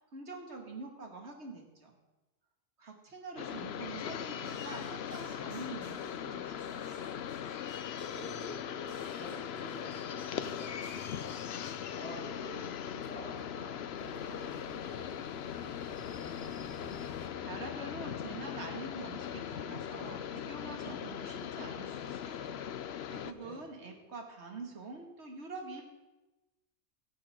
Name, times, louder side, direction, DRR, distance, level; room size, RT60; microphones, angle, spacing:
voice 1, 0.0-1.9 2.8-6.9 17.4-22.6 23.1-25.8, right 3 dB, 60° right, 2 dB, 2.5 m, -45 dB
sound 1, 3.4-23.3, left 9 dB, 60° left, 0.8 m, -40 dB
sound 2, 4.4-6.2 6.6-8.5 8.8-11.7, right 1 dB, 85° right, 4.7 m, -57 dB
voice 2, 8.0-11.3 11.9-15.8 23.0-23.7, left 1 dB, 10° left, -4 dB, 5.1 m, -48 dB
sound 3, 13.9-17.3, equal, 10° right, 1.3 m, -54 dB
17.5 x 14.5 x 3.8 m, 1.1 s
omnidirectional pair, 1.3 m